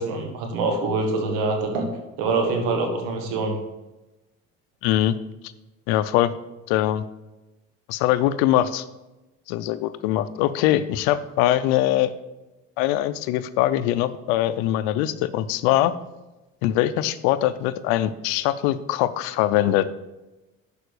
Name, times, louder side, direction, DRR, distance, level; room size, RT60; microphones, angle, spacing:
voice 1, 0.0-1.9 2.2-3.6, right 3 dB, 85° right, 3 dB, 1.5 m, -25 dB
voice 2, 4.8-5.1 5.9-6.3 6.7-7.0 7.9-8.8 9.5-12.1 12.8-15.9 16.6-19.9, left 13 dB, 90° left, 13 dB, 0.5 m, -22 dB
6.7 x 5.0 x 6.5 m, 1.0 s
supercardioid pair, 75°, 33 cm